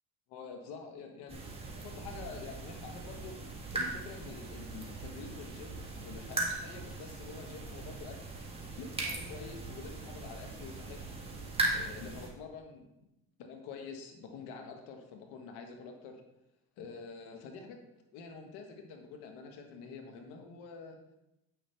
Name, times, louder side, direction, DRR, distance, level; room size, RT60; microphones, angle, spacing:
voice 1, 0.3-1.4 1.7-3.4 3.7-8.2 8.8-11.0 11.7-12.9 13.4-16.2 16.8-17.8 18.1-21.0, left 4 dB, 80° left, 4 dB, 1.4 m, -47 dB
sound 1, 1.3-12.3, right 2 dB, 15° right, 1.8 m, -39 dB
7.7 x 6.3 x 3.3 m, 0.89 s
supercardioid pair, 95°, 37 cm